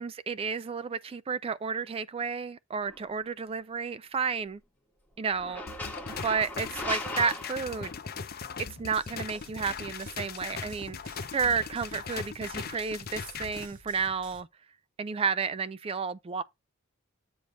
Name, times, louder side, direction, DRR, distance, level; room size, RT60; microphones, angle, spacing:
voice 1, 0.0-4.6 5.2-5.6 6.2-7.9 8.8-11.0 11.3-14.5 15.0-16.4, right 5 dB, 25° right, 0.3 m, -31 dB
sound 1, 2.8-3.0 5.3-8.2, left 2 dB, 10° left, 1.5 m, -38 dB
sound 2, 5.7-13.7, left 6 dB, 45° left, 0.7 m, -39 dB
sound 3, 8.8-14.4, right 2 dB, 70° right, 2.0 m, -52 dB
7.7 x 5.0 x 4.0 m
head